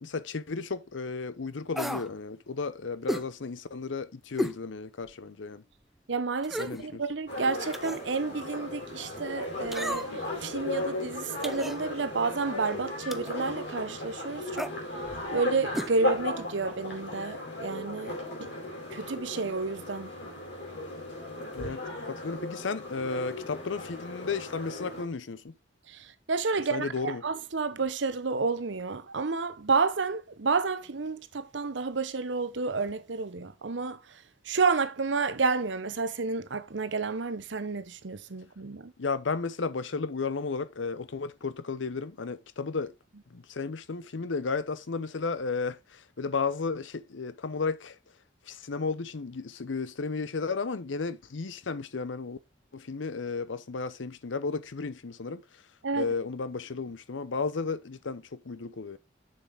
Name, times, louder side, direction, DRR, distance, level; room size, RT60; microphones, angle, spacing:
voice 1, 0.0-5.6 6.6-7.0 21.5-25.5 26.7-27.2 39.0-42.9 43.3-48.0 48.5-52.4 52.7-55.6 56.0-59.0, left 4 dB, 85° left, 0.7 m, -33 dB
sound 1, 1.7-2.1 3.1-3.3 4.4-4.6 5.1-5.2 6.4-6.8 7.7-8.1 9.7-10.3 11.4-11.8 13.1-13.4 14.5-14.8 15.7-15.9 16.2-16.3, equal, ahead, 0.3 m, -33 dB
voice 2, 6.1-14.7 15.0-18.5 18.9-20.1 21.6-21.7 25.9-38.9 55.8-56.1, right 4 dB, 80° right, 0.9 m, -30 dB
sound 2, 7.3-25.0, left 1 dB, 70° left, 4.5 m, -36 dB
6.8 x 6.8 x 3.5 m
head